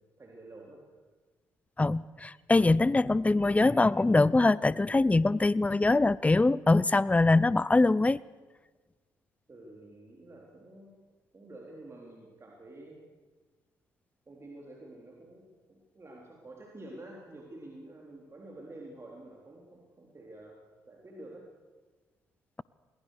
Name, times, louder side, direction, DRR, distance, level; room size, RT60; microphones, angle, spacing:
voice 1, 0.2-0.9 9.5-11.0 11.3-13.0 14.3-20.6 20.9-21.5, right 1 dB, 35° right, -1 dB, 3.8 m, -49 dB
voice 2, 1.8-8.2, left 2 dB, 15° left, 21 dB, 0.6 m, -23 dB
21.5 x 18.5 x 6.6 m, 1.3 s
hypercardioid pair, 45°, 8 cm